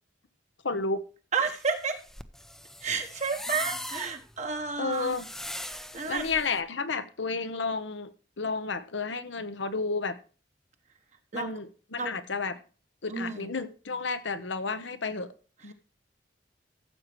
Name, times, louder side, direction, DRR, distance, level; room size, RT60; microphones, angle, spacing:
voice 1, 0.6-1.0 4.8-5.3 6.1-8.1 8.4-10.2 11.3-12.6 13.0-15.3 15.6-15.7, left 4 dB, 85° left, 1.0 m, -31 dB
voice 2, 1.3-2.0 2.8-5.2 5.7-6.3 11.3-11.5 12.0-12.1 13.1-13.5, right 5 dB, 40° right, 1.1 m, -31 dB
sound 1, 1.4-6.6, left 1 dB, ahead, 0.6 m, -40 dB
14.5 x 7.6 x 3.1 m
head